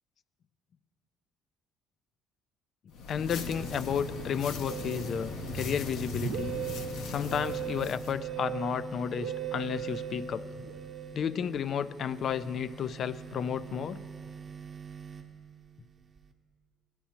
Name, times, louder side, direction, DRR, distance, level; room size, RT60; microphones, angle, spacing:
sound 1, 2.9-8.2, left 4 dB, 75° left, 0.7 m, -40 dB
voice 1, 3.1-6.5 7.1-10.5 11.1-14.0, left 8 dB, 55° left, 16 dB, 0.3 m, -32 dB
sound 2, 3.4-16.3, right 6 dB, 45° right, 0.9 m, -45 dB
Musical instrument, 4.7-11.5, right 7 dB, 85° right, 0.8 m, -38 dB
16.5 x 10.0 x 2.9 m, 2.3 s
supercardioid pair, 85°, 0 cm